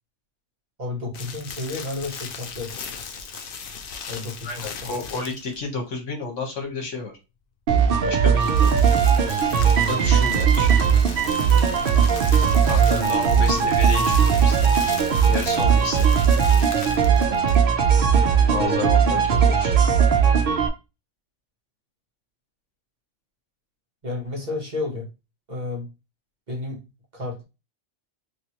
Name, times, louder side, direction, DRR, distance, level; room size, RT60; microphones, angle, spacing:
voice 1, 0.8-2.8 4.1-4.9 13.3-13.7 18.5-18.9 24.0-25.1 25.5-25.9 26.5-26.8 27.1-27.4, left 3 dB, 40° right, 1.1 m, -32 dB
sound 1, 1.1-5.6 8.1-17.7, left 6 dB, 60° left, 0.7 m, -37 dB
voice 2, 4.4-7.1 8.0-8.8 9.7-10.9 12.6-14.6 15.3-16.3 18.5-19.7, left 4 dB, 75° left, 1.5 m, -31 dB
sound 2, 7.7-20.7, right 7 dB, 55° right, 0.7 m, -18 dB
3.1 x 3.0 x 2.9 m
omnidirectional pair, 1.3 m